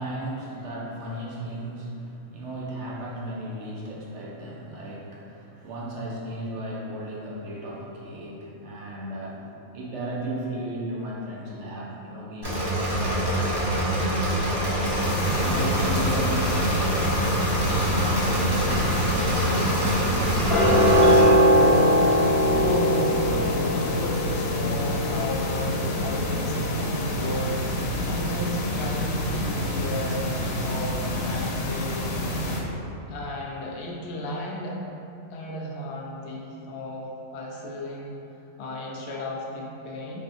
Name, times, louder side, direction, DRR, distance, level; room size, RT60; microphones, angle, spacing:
voice 1, 0.0-13.4 13.8-14.8 15.4-17.2 20.1-20.4, right 1 dB, 65° right, -4 dB, 0.9 m, -35 dB
Engine / Mechanisms, 12.4-21.2, right 1 dB, 25° right, 0.5 m, -25 dB
sound 1, 15.0-32.6, equal, 90° left, 1.0 m, -28 dB
sound 2, 18.1-28.4 28.7-28.8, equal, 20° left, 1.2 m, -23 dB
voice 2, 22.5-30.3 30.6-32.1 32.4-32.6 33.1-34.8 35.3-38.1 38.6-40.2, left 1 dB, 65° left, -2 dB, 0.7 m, -34 dB
5.3 x 2.6 x 2.5 m, 2.8 s
omnidirectional pair, 1.4 m